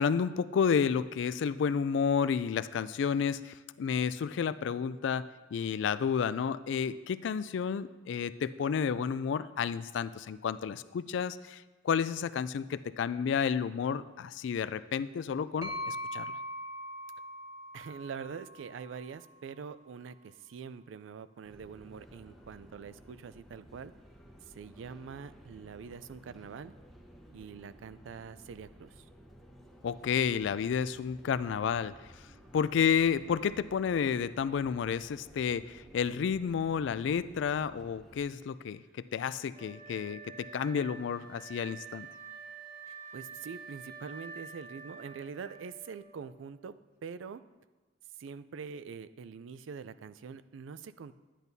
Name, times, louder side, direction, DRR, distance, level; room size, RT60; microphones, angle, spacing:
voice 1, 0.0-5.2 5.5-16.3 29.8-31.9 32.5-38.8 39.1-42.1, left 7 dB, 65° left, 15 dB, 0.3 m, -31 dB
sound 1, 15.6-19.4, equal, 20° right, 1.3 m, -41 dB
voice 2, 17.7-23.9 24.5-26.7 27.3-29.0 42.9-46.7 47.0-47.4 48.2-51.1, right 6 dB, 80° right, 14 dB, 0.4 m, -44 dB
sound 2, 21.4-38.2, equal, ahead, 0.9 m, -55 dB
Wind instrument woodwind instrument, 39.5-46.5, right 5 dB, 50° right, 1.0 m, -48 dB
10.5 x 10.0 x 2.7 m, 1.2 s
head